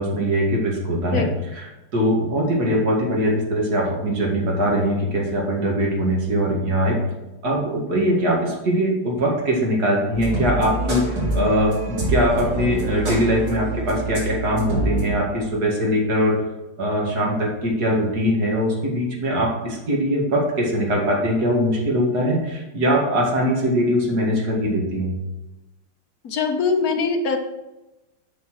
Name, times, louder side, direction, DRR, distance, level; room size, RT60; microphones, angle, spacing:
voice 1, 0.0-7.0 7.4-16.5 16.8-25.1, equal, 45° right, -2 dB, 2.5 m, -22 dB
sound 1, 10.1-15.1, right 2 dB, 75° right, 4.1 m, -26 dB
voice 2, 26.2-27.4, left 4 dB, 50° left, 4 dB, 1.3 m, -22 dB
7.5 x 6.1 x 6.3 m, 1.0 s
omnidirectional pair, 2.3 m